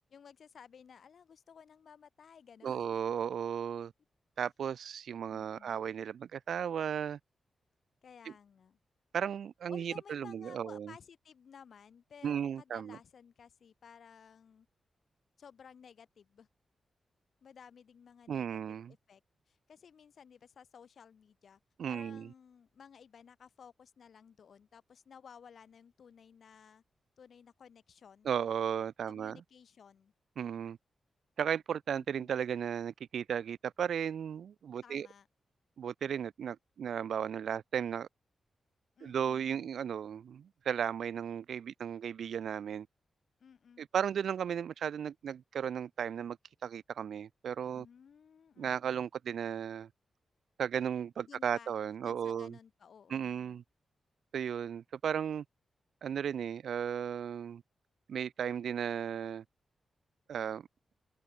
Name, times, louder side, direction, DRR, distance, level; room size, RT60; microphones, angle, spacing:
voice 1, 0.1-3.1 5.3-5.8 8.0-8.8 9.7-14.7 15.4-16.5 17.4-19.2 19.5-21.6 21.9-26.8 27.2-28.3 29.1-30.1 31.9-32.3 34.8-35.3 39.0-39.7 43.4-43.9 47.7-49.0 51.3-51.7 52.0-53.6, left 7 dB, 60° left, 3.5 m, -56 dB
voice 2, 2.6-3.9 4.4-7.2 8.2-8.3 9.1-10.9 12.2-13.0 18.3-18.9 21.8-22.3 28.2-29.4 30.4-30.8 31.4-35.1 35.8-38.1 39.0-42.9 43.8-46.4 46.6-47.9 48.6-49.9 50.6-52.6 53.1-53.6 54.3-55.4 56.0-57.6 58.1-59.4 60.3-60.7, right 8 dB, 75° right, 1.2 m, -35 dB
wide cardioid pair, 145°, 0 cm